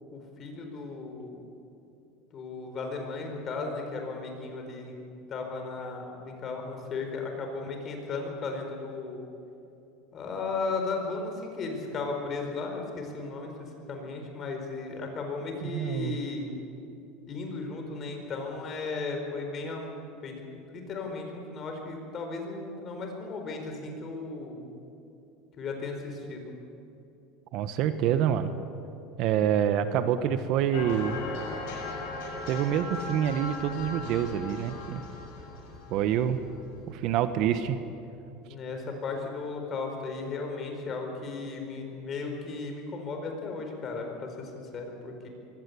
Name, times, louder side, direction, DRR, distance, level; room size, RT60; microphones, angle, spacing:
voice 1, 0.1-1.4 2.3-4.9 5.3-9.2 10.1-16.5 17.3-19.9 20.2-24.6 25.6-26.4 38.5-45.3, left 3 dB, 35° left, 3 dB, 4.5 m, -35 dB
voice 2, 15.6-16.2 27.5-28.5 29.2-31.2 32.5-35.0 35.9-36.4 36.9-37.8, right 9 dB, 55° right, 10 dB, 1.2 m, -27 dB
sound 1, 30.7-37.8, left 3 dB, 75° left, 6.8 m, -39 dB
23.0 x 16.5 x 8.4 m, 2.8 s
supercardioid pair, 135°, 0 cm